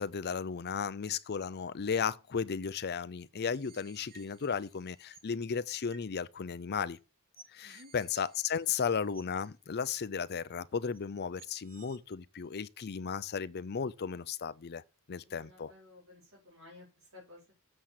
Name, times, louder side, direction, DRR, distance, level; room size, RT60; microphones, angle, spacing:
voice 1, 0.0-7.0 7.5-14.8 15.1-15.7, left 6 dB, 45° left, 0.5 m, -35 dB
sound 1, 3.5-5.3 5.9-6.1 6.9-7.0 7.4-9.5 9.9-10.0 10.9-11.0 11.4-12.0, right 5 dB, 40° right, 1.8 m, -58 dB
voice 2, 7.6-7.9 15.2-17.4, left 2 dB, 75° right, 4.7 m, -55 dB
7.5 x 7.4 x 6.4 m
head